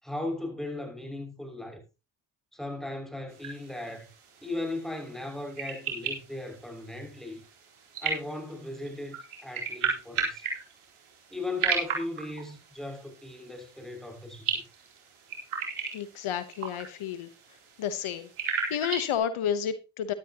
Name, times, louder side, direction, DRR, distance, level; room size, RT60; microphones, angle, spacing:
voice 1, 0.0-1.8 2.5-4.1 4.4-7.4 8.0-9.2 9.4-10.5 11.3-14.7, left 2 dB, ahead, 6.2 m, -37 dB
sound 1, 3.3-19.2, right 5 dB, 85° right, 4.3 m, -36 dB
voice 2, 15.9-17.3 17.8-18.3 18.7-20.1, left 9 dB, 80° left, 1.2 m, -30 dB
13.0 x 12.5 x 3.0 m
supercardioid pair, 50°, 49 cm